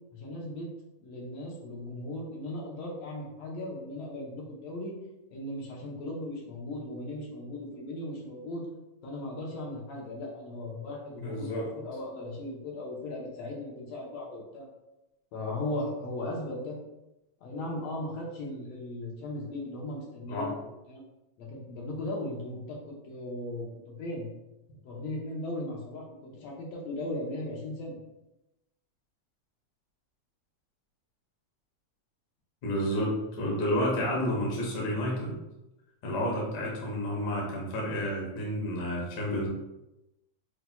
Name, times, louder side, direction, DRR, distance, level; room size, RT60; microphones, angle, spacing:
voice 1, 0.1-0.7 1.0-5.0 5.3-8.6 9.0-14.7 15.3-16.8 17.4-21.0 21.4-24.3 24.8-28.0, left 1 dB, 70° left, -3 dB, 1.9 m, -37 dB
voice 2, 11.2-11.7 20.3-20.5 32.6-35.3 36.0-39.5, equal, 85° left, -3 dB, 0.9 m, -30 dB
6.1 x 2.7 x 2.2 m, 0.94 s
omnidirectional pair, 3.5 m